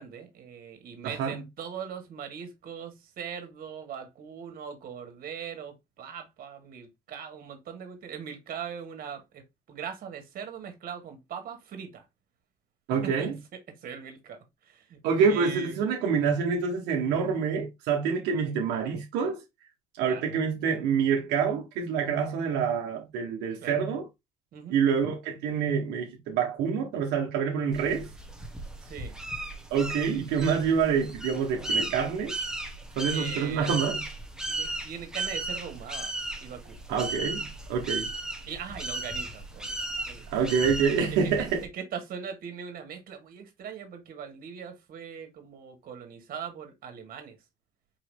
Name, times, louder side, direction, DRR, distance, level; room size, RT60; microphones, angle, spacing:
voice 1, 0.0-12.1 13.0-15.0 15.2-15.8 18.5-18.6 20.1-20.2 23.6-23.8 24.5-24.8 28.8-29.2 33.1-33.8 34.5-36.1 36.4-36.8 38.5-39.7 40.1-40.3 41.2-47.4, right 7 dB, 60° right, 1.6 m, -40 dB
voice 2, 1.0-1.4 12.9-13.3 15.0-19.4 20.0-24.0 24.7-28.1 29.7-32.3 33.0-34.0 36.9-38.1 40.3-41.6, right 6 dB, 90° right, 1.0 m, -27 dB
sound 1, 27.7-41.7, right 2 dB, 5° right, 1.0 m, -35 dB
4.7 x 2.9 x 3.3 m
cardioid pair, 110°, 17 cm